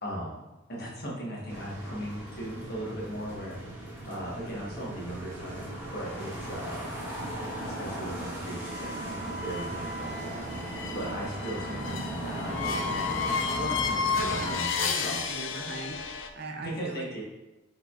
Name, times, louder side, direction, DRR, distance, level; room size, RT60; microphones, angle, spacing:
voice 1, 0.0-0.4 0.7-3.6 4.0-6.9 7.6-10.4 10.9-15.2 16.6-17.2, right 1 dB, 50° left, -4 dB, 1.2 m, -38 dB
sound 1, 1.5-14.5, right 1 dB, 10° right, 0.9 m, -37 dB
sound 2, 8.6-16.3, left 5 dB, 70° left, 0.4 m, -32 dB
voice 2, 14.4-16.1 16.3-17.2, right 2 dB, 50° right, 2 dB, 0.6 m, -40 dB
6.4 x 3.3 x 2.4 m, 1.0 s
head